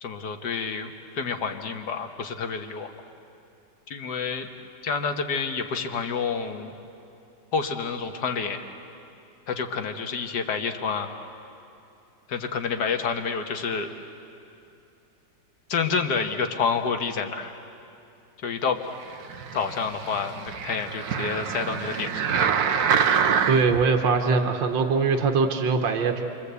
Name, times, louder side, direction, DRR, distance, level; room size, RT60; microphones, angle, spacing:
voice 1, 0.0-2.9 3.9-4.5 4.8-6.8 7.5-8.6 9.5-11.1 12.3-13.9 15.7-17.6 18.4-18.8 19.5-22.1, left 5 dB, 60° left, 6 dB, 2.0 m, -28 dB
sound 1, 19.3-23.8 24.4-24.5, right 7 dB, 60° right, 1.3 m, -26 dB
voice 2, 23.5-26.2, right 4 dB, 80° right, 4 dB, 2.0 m, -22 dB
29.0 x 24.0 x 8.3 m, 2.7 s
omnidirectional pair, 2.0 m